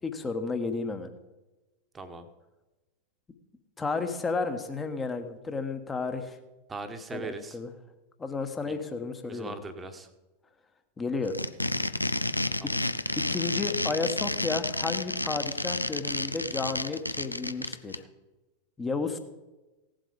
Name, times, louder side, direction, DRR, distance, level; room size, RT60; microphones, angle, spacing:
voice 1, 0.0-1.1 3.8-6.4 7.1-7.7 8.2-9.5 11.0-11.3 13.2-18.0 18.8-19.2, left 4 dB, 15° left, 7 dB, 1.3 m, -32 dB
voice 2, 1.9-2.3 6.7-7.6 8.7-8.8 9.2-10.1 12.6-12.8, right 3 dB, 15° right, 8 dB, 1.2 m, -40 dB
sound 1, 11.2-18.0, left 2 dB, 85° left, 0.4 m, -30 dB
16.5 x 7.6 x 5.2 m, 1.1 s
figure-of-eight pair, 90°, 0 cm